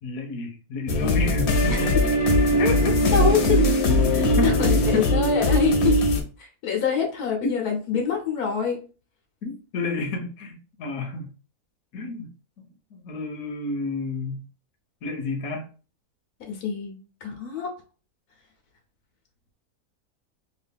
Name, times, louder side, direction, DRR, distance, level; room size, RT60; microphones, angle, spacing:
voice 1, 0.0-1.9 2.6-3.0 4.2-5.1 7.4-7.6 9.4-11.3 11.9-12.3 12.9-14.4 15.0-15.7, left 3 dB, 70° left, 2 dB, 1.1 m, -30 dB
sound 1, 0.9-6.2, left 1 dB, 55° left, 0.8 m, -20 dB
voice 2, 3.1-3.7 4.1-6.0 6.6-8.8 16.5-17.7, left 7 dB, 90° left, 2 dB, 1.3 m, -25 dB
3.2 x 2.4 x 3.4 m, 0.35 s
omnidirectional pair, 1.6 m